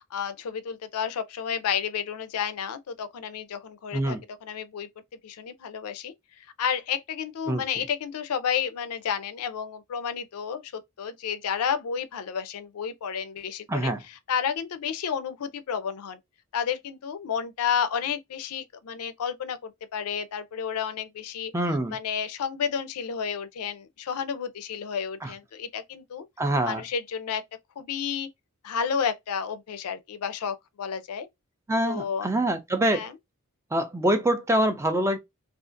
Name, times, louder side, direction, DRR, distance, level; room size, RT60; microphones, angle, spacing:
voice 1, 0.1-4.9 5.2-6.1 6.6-16.2 16.5-21.5 21.9-26.2 26.6-27.4 27.8-28.3 28.6-31.3 31.8-32.3 32.9-33.2, left 7 dB, 80° left, 0.4 m, -31 dB
voice 2, 13.7-14.0 21.5-22.0 25.2-25.3 26.4-26.8 31.7-33.1 33.7-35.2, right 1 dB, 15° right, 0.4 m, -25 dB
2.5 x 2.4 x 2.4 m
head